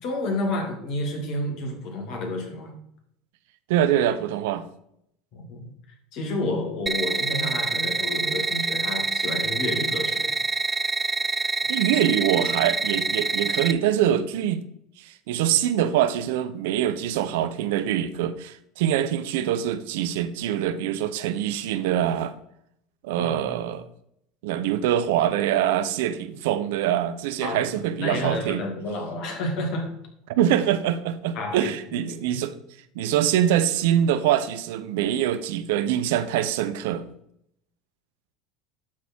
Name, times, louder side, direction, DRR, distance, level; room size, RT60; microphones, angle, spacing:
voice 1, 0.0-2.8 5.3-5.7 6.1-10.4 23.2-23.6 27.4-27.7 28.0-29.9 31.3-32.4, left 1 dB, 55° left, 2.3 m, -30 dB
voice 2, 3.7-4.6 11.7-14.6 15.0-22.3 23.0-23.9 24.4-28.6 30.4-32.5 32.9-37.0, right 10 dB, 70° right, 0.6 m, -24 dB
sound 1, 6.9-13.7, right 4 dB, 20° right, 0.6 m, -26 dB
11.5 x 4.1 x 4.5 m
hypercardioid pair, 75°, 0 cm